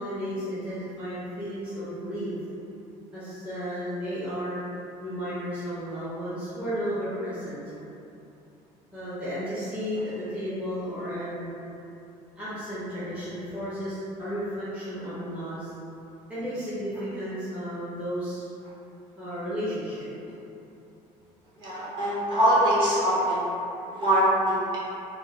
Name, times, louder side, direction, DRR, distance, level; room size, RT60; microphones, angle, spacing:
voice 1, 0.0-2.3 3.1-4.7 5.0-7.6 8.9-11.5 12.4-15.7 16.3-18.5 19.2-20.1, equal, 10° right, -14 dB, 0.6 m, -33 dB
voice 2, 21.6-23.5 23.9-24.8, right 1 dB, 35° right, -10 dB, 0.9 m, -23 dB
3.0 x 2.0 x 3.4 m, 2.8 s
cardioid pair, 175°, 15 cm